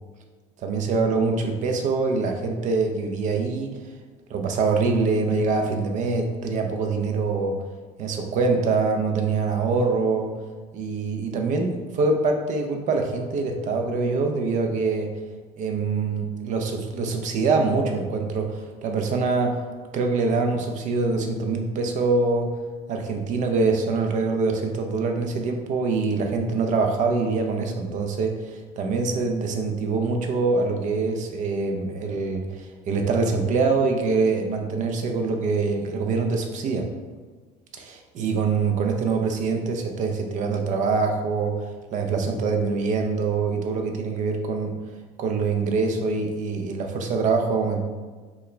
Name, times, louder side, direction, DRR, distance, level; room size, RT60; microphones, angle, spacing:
voice 1, 0.6-3.8 4.3-7.6 8.0-10.3 10.7-15.1 15.6-19.6 19.9-22.5 22.9-36.9 37.7-44.8 45.2-47.8, right 4 dB, 55° right, 4 dB, 0.6 m, -24 dB
4.5 x 2.2 x 3.2 m, 1.4 s
cardioid pair, 120°, 16 cm